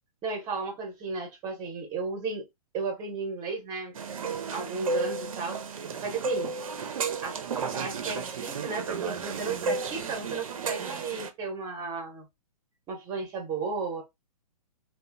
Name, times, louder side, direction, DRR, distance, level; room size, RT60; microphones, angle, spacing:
voice 1, 0.2-2.4 2.7-3.9 4.5-5.6 6.0-6.5 7.2-12.3 12.9-14.0, right 4 dB, 20° right, 0.8 m, -34 dB
sound 1, 3.9-11.3, right 4 dB, 60° right, 0.5 m, -33 dB
2.8 x 2.1 x 2.4 m
figure-of-eight pair, 115°, 20 cm